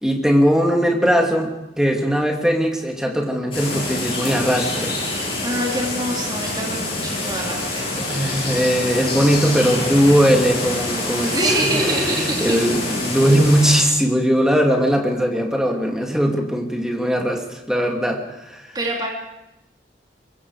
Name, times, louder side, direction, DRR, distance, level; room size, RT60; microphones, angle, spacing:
voice 1, 0.0-4.9 7.9-18.7, equal, 5° right, 1 dB, 2.6 m, -19 dB
sound 1, 3.5-13.8, left 2 dB, 30° left, 7.8 m, -26 dB
voice 2, 5.4-7.9 11.2-12.7 18.7-19.1, right 1 dB, 25° right, -2 dB, 3.2 m, -25 dB
23.5 x 22.5 x 4.9 m, 0.91 s
head